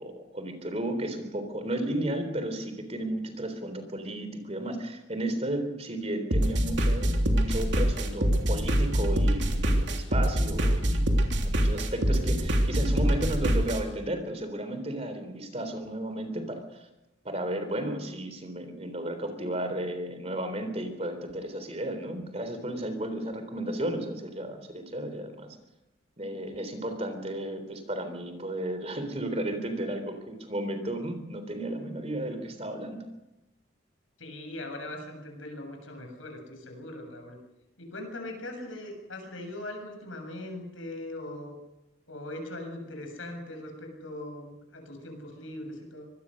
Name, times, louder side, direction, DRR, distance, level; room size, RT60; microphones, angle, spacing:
voice 1, 0.0-16.6 17.2-25.6 26.2-33.0, right 1 dB, 30° right, 8 dB, 3.7 m, -33 dB
sound 1, 6.3-13.8, equal, 60° right, 3.3 m, -25 dB
voice 2, 34.2-37.4 37.8-41.6 42.1-46.0, left 1 dB, 80° left, 3 dB, 7.4 m, -40 dB
25.0 x 20.0 x 6.5 m, 0.93 s
head